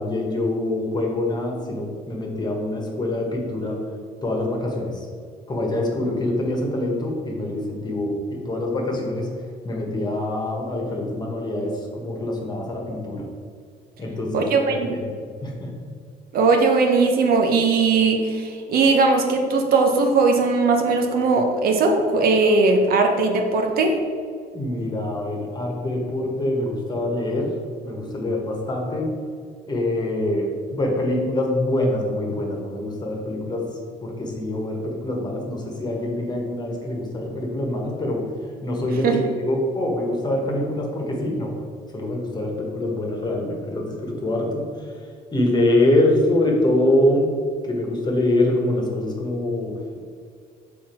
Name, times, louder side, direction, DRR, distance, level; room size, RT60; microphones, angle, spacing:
voice 1, 0.0-3.8 4.2-5.1 5.5-9.3 9.6-13.3 14.0-15.1 15.4-15.7 24.5-27.5 27.8-29.1 29.7-33.7 34.0-38.3 38.6-41.6 41.9-44.9 45.3-47.3 47.6-50.0, left 1 dB, 25° left, 0 dB, 1.3 m, -24 dB
voice 2, 14.3-15.0 16.3-24.0 39.0-39.3, right 3 dB, 60° right, 3 dB, 0.9 m, -19 dB
5.9 x 4.3 x 4.4 m, 2.1 s
cardioid pair, 110°, 17 cm